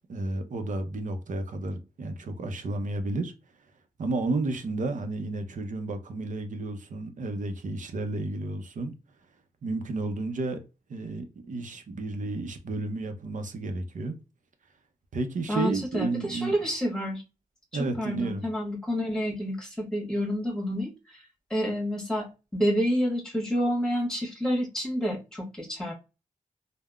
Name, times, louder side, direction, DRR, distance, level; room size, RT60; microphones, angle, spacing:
voice 1, 0.1-3.3 4.0-8.9 9.6-10.6 10.9-14.2 15.1-16.5 17.7-18.5, right 2 dB, 60° right, 0.6 m, -32 dB
voice 2, 15.5-17.2 17.8-21.2 21.5-25.9, equal, 5° left, 1.5 m, -29 dB
3.4 x 2.1 x 2.3 m
cardioid pair, 55°, 15 cm